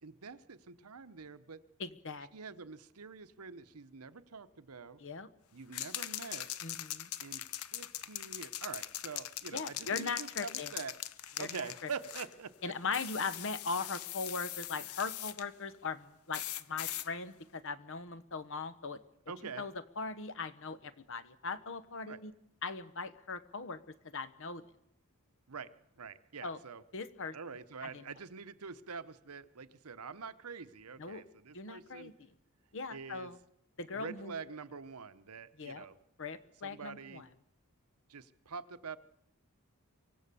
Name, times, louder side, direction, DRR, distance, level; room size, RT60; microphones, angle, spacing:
voice 1, 0.0-1.6 2.3-5.0 5.5-6.5 7.2-7.4 7.7-11.0 11.2-12.5 19.3-19.7 22.1-22.2 25.5-25.7 26.0-26.8 27.3-32.1 32.9-33.3 33.9-35.9 36.6-37.3 38.1-39.0, right 5 dB, 85° right, 13 dB, 0.9 m, -45 dB
voice 2, 1.8-2.3 5.0-5.3 6.6-7.1 9.5-10.7 11.4-11.5 11.8-11.9 12.6-19.0 19.6-22.3 22.6-24.6 26.4-26.6 26.9-27.3 27.8-28.1 31.0-31.2 31.5-32.1 32.7-33.4 33.8-34.4 35.6-35.9 36.2-37.3, left 4 dB, 60° left, 14 dB, 1.1 m, -39 dB
sound 1, 5.7-12.3 12.9-15.4 16.3-17.1, left 12 dB, 75° left, 0.8 m, -41 dB
24.5 x 17.0 x 6.9 m, 0.81 s
head